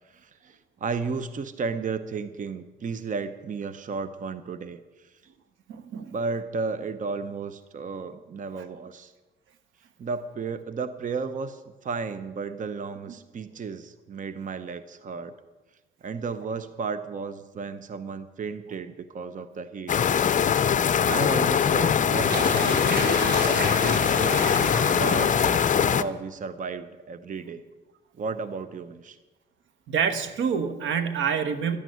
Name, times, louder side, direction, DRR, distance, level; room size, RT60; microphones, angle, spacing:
voice 1, 0.1-5.1 6.1-9.1 10.0-15.3 16.0-20.0 21.0-24.4 24.9-27.6 28.2-29.2, right 5 dB, 40° right, 12 dB, 0.8 m, -33 dB
voice 2, 5.7-6.1 24.8-25.2 29.9-31.8, right 7 dB, 75° right, 10 dB, 1.3 m, -27 dB
sound 1, 19.9-26.0, left 8 dB, 40° left, 0.6 m, -22 dB
sound 2, 22.1-26.2, right 2 dB, 60° right, 3.9 m, -32 dB
12.0 x 9.1 x 9.4 m, 1.2 s
cardioid pair, 90°, 20 cm